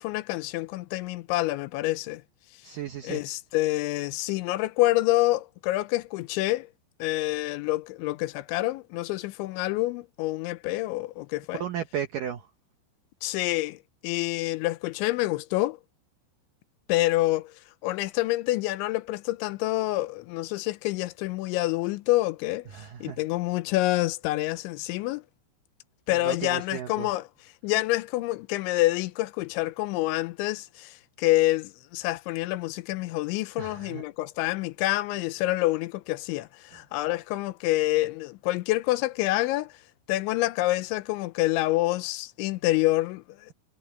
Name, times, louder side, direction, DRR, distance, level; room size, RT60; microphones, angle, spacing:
voice 1, 0.0-2.2 3.0-6.7 7.0-11.6 13.2-15.8 16.9-17.5 17.8-22.6 23.0-25.2 26.1-27.3 27.6-39.7 40.1-43.5, left 18 dB, 85° left, 3.1 m, -27 dB
voice 2, 2.6-3.2 11.6-12.4 22.7-23.2 26.1-27.1 33.6-34.0, right 9 dB, 80° right, 1.9 m, -34 dB
omnidirectional pair, 5.4 m